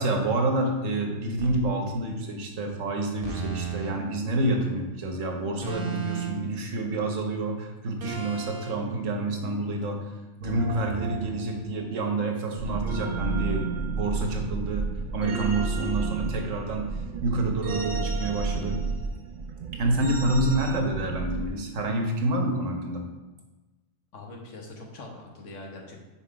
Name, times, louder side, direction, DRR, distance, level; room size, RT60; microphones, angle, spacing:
voice 1, 0.0-10.1 10.4-14.9 15.1-18.8 19.7-23.1, right 2 dB, 90° right, 3 dB, 1.4 m, -28 dB
sound 1, 1.4-1.6 3.2-3.9 5.6-6.5 8.0-8.7 10.4-11.9 12.8-14.4 15.2-16.9 17.6-19.1 20.0-20.8, right 6 dB, 50° right, 1.1 m, -35 dB
sound 2, 12.6-21.5, right 4 dB, 75° right, 0.4 m, -32 dB
voice 2, 24.1-26.1, left 2 dB, 80° left, 0 dB, 1.5 m, -43 dB
5.9 x 4.5 x 4.6 m, 1.1 s
omnidirectional pair, 1.3 m